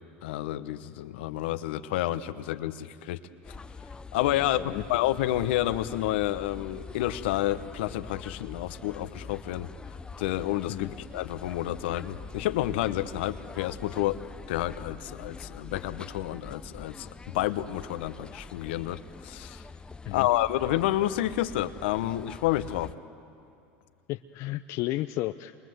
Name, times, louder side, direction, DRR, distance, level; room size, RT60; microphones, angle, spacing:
voice 1, 0.2-3.2 4.1-9.7 10.2-14.2 14.5-19.6 20.1-22.9, left 14 dB, 75° left, 12 dB, 0.9 m, -29 dB
sound 1, 3.4-22.9, left 4 dB, 15° left, 0.6 m, -44 dB
voice 2, 4.4-4.8 10.7-10.9 20.0-20.3 24.1-25.5, left 16 dB, 55° left, 9 dB, 0.6 m, -33 dB
28.0 x 22.5 x 7.9 m, 2.4 s
hypercardioid pair, 95°, 6 cm